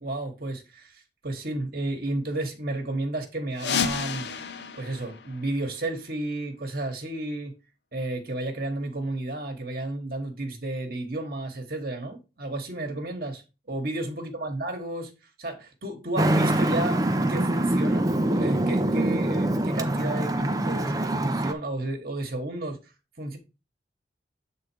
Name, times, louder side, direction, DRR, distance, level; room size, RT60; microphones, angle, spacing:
voice 1, 0.0-4.3 4.8-7.5 7.9-15.1 15.4-17.0 17.3-22.8 23.2-23.4, right 2 dB, 50° right, 1.3 m, -32 dB
sound 1, 3.5-6.2, left 6 dB, 70° left, 0.7 m, -32 dB
Traffic noise roadway noise, 16.2-21.5, right 1 dB, 20° right, 0.5 m, -24 dB
8.0 x 3.7 x 4.4 m
head